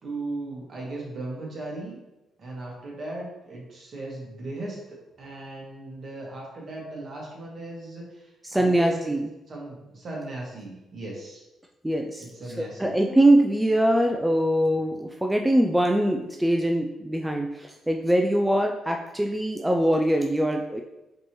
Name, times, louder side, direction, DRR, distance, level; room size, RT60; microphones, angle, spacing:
voice 1, 0.0-2.0 2.4-9.2 9.5-11.4 12.2-12.9, right 2 dB, 50° right, -3 dB, 1.5 m, -37 dB
voice 2, 8.4-9.3 11.8-12.2 12.6-20.8, right 1 dB, 5° right, 2 dB, 0.3 m, -23 dB
5.2 x 2.9 x 3.0 m, 0.98 s
cardioid pair, 90°, 0 cm